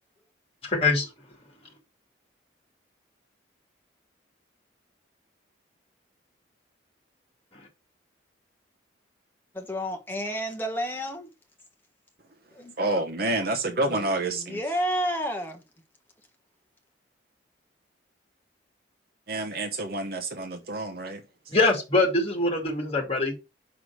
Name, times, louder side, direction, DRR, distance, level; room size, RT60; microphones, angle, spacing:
voice 1, 0.6-1.1 7.5-7.7 21.5-23.3, left 3 dB, 30° left, 2.3 m, -24 dB
voice 2, 9.5-11.3 12.5-13.0 13.9-15.6, equal, 10° left, 1.3 m, -31 dB
voice 3, 12.8-14.6 19.3-21.2, right 2 dB, 50° right, 0.9 m, -28 dB
5.9 x 4.9 x 4.6 m
head